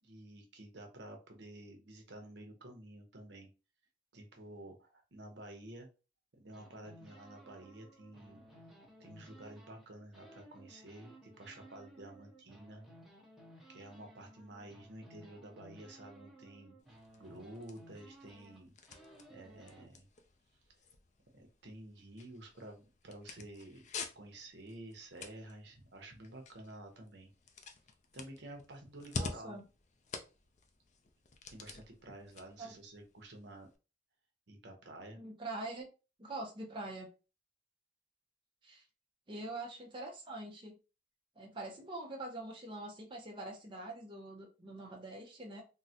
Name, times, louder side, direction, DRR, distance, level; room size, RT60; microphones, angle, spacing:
voice 1, 0.0-3.5 4.1-5.9 6.4-8.5 9.0-12.8 13.7-18.7 19.3-20.1 21.3-23.9 24.1-27.3 28.1-29.5 31.5-33.7 34.5-35.2, right 1 dB, 65° right, 3 dB, 0.8 m, -51 dB
sound 1, 6.5-9.9 10.1-19.9, right 1 dB, ahead, 0.9 m, -58 dB
sound 2, 16.8-33.8, left 4 dB, 40° left, 0.4 m, -49 dB
voice 2, 29.2-29.6 32.6-32.7 35.1-35.9 36.2-37.1 38.6-38.8 39.3-40.8 41.4-45.6, right 2 dB, 25° right, -1 dB, 0.6 m, -44 dB
3.7 x 2.1 x 2.7 m, 0.32 s
head